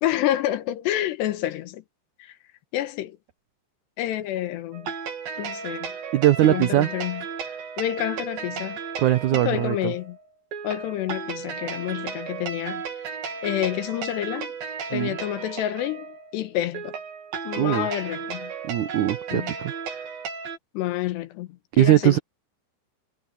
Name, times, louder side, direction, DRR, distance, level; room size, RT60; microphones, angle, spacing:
voice 1, 0.0-1.8 2.2-2.3 2.7-3.2 4.0-4.9 5.4-5.9 6.4-7.2 7.8-8.8 9.3-10.2 10.6-12.8 13.4-14.5 14.9-16.9 17.4-18.5 19.3-19.5 20.7-22.2, left 13 dB, 90° left, 3.4 m, -28 dB
sound 1, 4.7-20.6, right 6 dB, 60° right, 4.3 m, -34 dB
voice 2, 6.1-6.9 9.0-9.9 14.9-15.2 17.6-17.9 18.6-19.7 21.8-22.2, right 13 dB, 85° right, 1.7 m, -20 dB
omnidirectional pair, 4.8 m